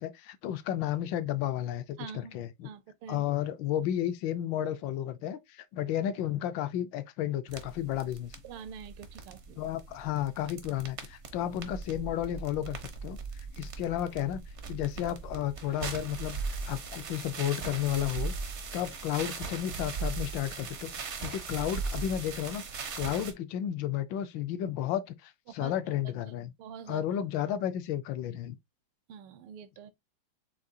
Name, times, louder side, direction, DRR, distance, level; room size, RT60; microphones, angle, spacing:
voice 1, 0.0-2.7 3.1-8.3 9.6-13.2 13.6-14.4 14.7-18.3 18.7-22.6 23.0-26.5 26.9-28.6, left 11 dB, 75° left, 1.1 m, -32 dB
voice 2, 2.0-3.2 8.4-9.7 25.5-25.7 26.3-26.4 26.6-27.0 29.1-29.9, right 7 dB, 80° right, 1.5 m, -46 dB
sound 1, 7.5-23.3, right 4 dB, 60° right, 0.7 m, -39 dB
7.4 x 2.6 x 2.7 m
omnidirectional pair, 2.4 m